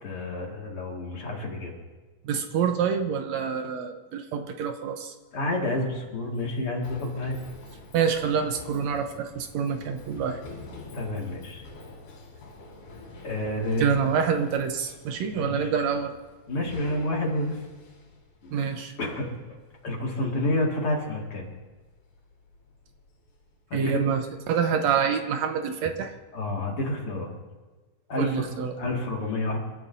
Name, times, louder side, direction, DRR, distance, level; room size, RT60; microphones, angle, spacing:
voice 1, 0.0-1.7 5.3-7.4 10.9-11.6 13.2-13.9 15.3-15.7 16.5-17.7 18.4-18.5 19.0-19.3 19.8-21.5 23.7-24.0 26.3-27.3 28.1-28.5 28.8-29.6, left 1 dB, 50° left, -1 dB, 2.8 m, -29 dB
voice 2, 2.2-5.1 7.9-10.4 13.8-16.1 18.5-19.0 23.7-26.1 28.2-28.8, right 7 dB, 75° right, 6 dB, 2.1 m, -27 dB
Run, 5.4-23.9, left 2 dB, 85° left, 4.3 m, -48 dB
28.5 x 13.0 x 2.7 m, 1.3 s
omnidirectional pair, 3.4 m